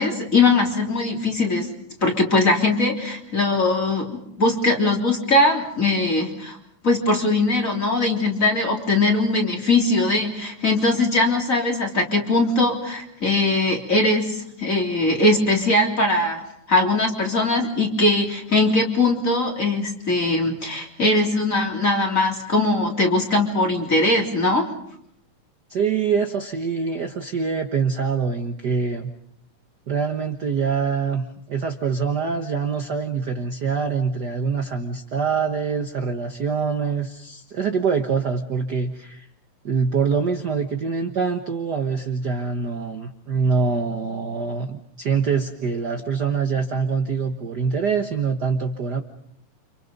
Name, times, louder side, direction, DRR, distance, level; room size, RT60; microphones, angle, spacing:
voice 1, 0.0-1.7 2.0-6.6 6.8-16.4 16.7-24.7, left 2 dB, 25° left, 1 dB, 3.6 m, -20 dB
voice 2, 25.7-29.1 29.9-39.3 39.6-49.0, right 5 dB, 60° right, 5 dB, 1.0 m, -24 dB
30.0 x 27.0 x 5.4 m, 0.71 s
omnidirectional pair, 3.8 m